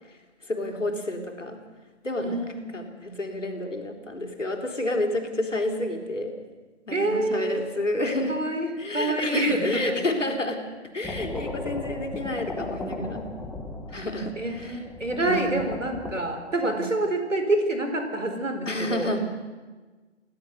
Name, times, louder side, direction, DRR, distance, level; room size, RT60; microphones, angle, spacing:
voice 1, 0.5-1.6 2.0-2.4 2.7-6.4 6.9-8.4 8.8-13.3 13.9-14.8 15.2-15.6 16.6-16.8 18.7-19.2, left 1 dB, 80° left, 4 dB, 3.9 m, -29 dB
voice 2, 2.2-2.9 6.9-7.7 8.3-10.2 13.9-19.1, right 2 dB, 85° right, 5 dB, 4.3 m, -27 dB
sound 1, 11.0-16.1, left 2 dB, 5° left, 1.0 m, -36 dB
27.5 x 16.5 x 6.7 m, 1.3 s
figure-of-eight pair, 145°, 37 cm